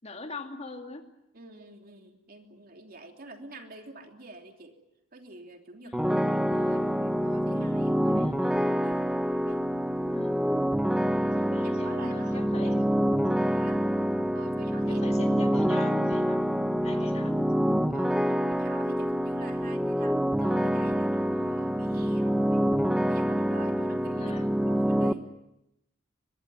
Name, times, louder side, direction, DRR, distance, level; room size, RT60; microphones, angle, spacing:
voice 1, 0.0-1.0 5.8-6.2 8.1-8.6 10.0-10.4 11.3-12.9 14.9-17.5 24.1-24.5, left 2 dB, 30° left, 5 dB, 2.4 m, -41 dB
voice 2, 1.3-4.8 5.1-8.3 8.8-9.7 11.0-12.7 13.3-13.8 14.3-15.2 16.8-17.1 17.9-22.7 23.1-25.3, right 2 dB, 45° right, 4 dB, 3.1 m, -47 dB
sound 1, 5.9-25.1, equal, 5° right, 0.9 m, -26 dB
23.0 x 22.0 x 9.5 m, 0.85 s
head